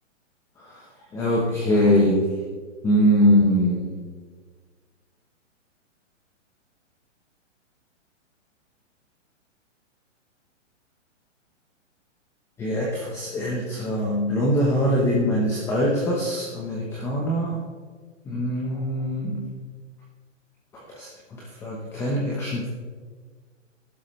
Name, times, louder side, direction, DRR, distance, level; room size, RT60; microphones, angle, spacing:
voice 1, 1.1-2.3 2.8-4.0 12.6-17.6 18.3-19.4 20.7-22.7, equal, 5° left, -3 dB, 0.9 m, -23 dB
15.0 x 11.5 x 3.2 m, 1.5 s
hypercardioid pair, 165°, 38 cm